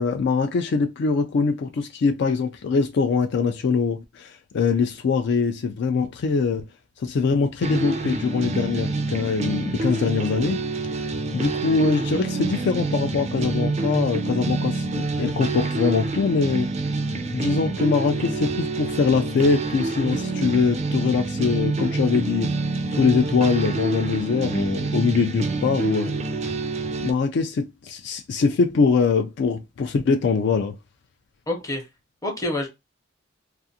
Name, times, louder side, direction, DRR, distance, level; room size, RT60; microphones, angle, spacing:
voice 1, 0.0-6.7 7.0-10.6 11.3-16.7 17.3-22.5 22.9-26.2 27.0-30.8, left 5 dB, 60° left, 0.3 m, -23 dB
sound 1, 7.6-27.1, right 3 dB, 35° right, 0.3 m, -27 dB
voice 2, 31.5-31.9 32.2-32.7, left 1 dB, 20° left, 0.7 m, -27 dB
2.4 x 2.4 x 2.7 m
head